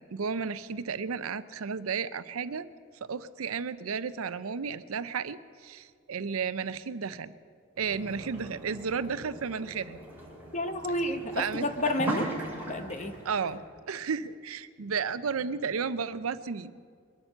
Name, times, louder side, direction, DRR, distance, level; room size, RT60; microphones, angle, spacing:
voice 1, 0.0-2.7 3.0-7.3 7.8-10.0 11.4-11.7 13.2-13.6 13.9-16.7, right 6 dB, 85° right, 14 dB, 0.6 m, -33 dB
sound 1, 7.8-13.6, right 1 dB, 10° right, 2.9 m, -39 dB
voice 2, 10.5-12.3 12.7-13.2, left 1 dB, 35° left, 8 dB, 0.9 m, -30 dB
23.0 x 8.8 x 6.8 m, 2.1 s
head